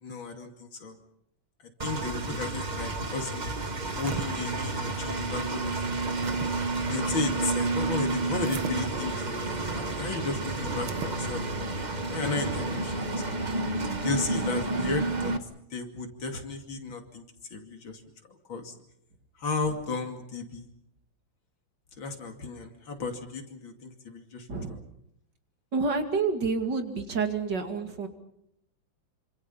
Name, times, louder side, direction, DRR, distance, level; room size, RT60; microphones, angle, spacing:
voice 1, 0.0-0.9 1.8-3.5 4.0-6.0 6.9-11.5 12.1-13.6 14.0-15.3 15.7-17.2 17.5-18.0 18.3-18.7 19.4-20.6 22.0-24.5, left 4 dB, 65° left, 5 dB, 3.3 m, -34 dB
Engine, 1.8-15.4, right 2 dB, 25° right, 1.2 m, -30 dB
sound 1, 3.7-4.3 5.7-6.5 8.4-8.8 10.7-11.2, right 9 dB, 70° right, 1.8 m, -38 dB
voice 2, 25.7-28.1, right 4 dB, 55° right, 6 dB, 2.8 m, -28 dB
27.0 x 26.0 x 5.6 m, 0.76 s
omnidirectional pair, 2.3 m